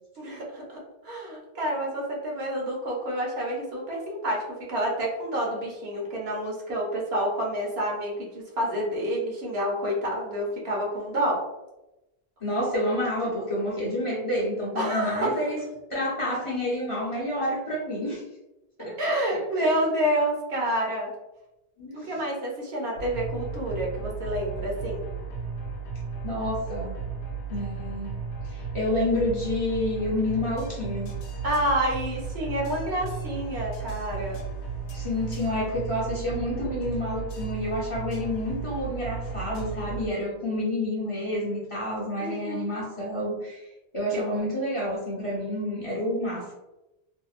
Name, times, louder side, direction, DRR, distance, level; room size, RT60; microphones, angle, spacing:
voice 1, 0.2-4.4 4.7-11.4 14.7-15.4 19.0-21.1 21.9-25.1 31.4-34.4 42.2-42.7 44.1-44.2, equal, 75° right, -3 dB, 1.0 m, -28 dB
voice 2, 12.4-15.6 15.9-18.2 18.8-19.0 19.3-19.7 21.8-22.1 26.2-27.0 27.5-28.2 28.4-31.1 34.9-43.7 43.9-46.5, left 1 dB, 35° left, -6 dB, 0.6 m, -29 dB
sound 1, 23.0-40.1, right 5 dB, 75° left, 0.8 m, -35 dB
2.7 x 2.1 x 2.4 m, 0.96 s
omnidirectional pair, 1.1 m